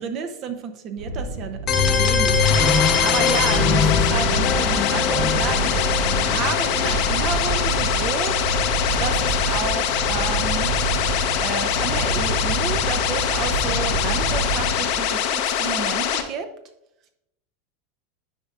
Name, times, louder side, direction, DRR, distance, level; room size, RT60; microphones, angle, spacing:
voice 1, 0.0-5.9 6.2-8.4 9.0-10.7 11.4-16.5, right 6 dB, 45° right, 7 dB, 0.8 m, -31 dB
sound 1, 1.0-15.2, right 2 dB, 90° right, 0.9 m, -27 dB
sound 2, 1.7-11.4, left 6 dB, 35° left, 1.1 m, -24 dB
sound 3, 2.4-16.2, left 9 dB, 60° left, 0.8 m, -24 dB
9.9 x 5.2 x 2.5 m, 0.82 s
supercardioid pair, 120°, 0 cm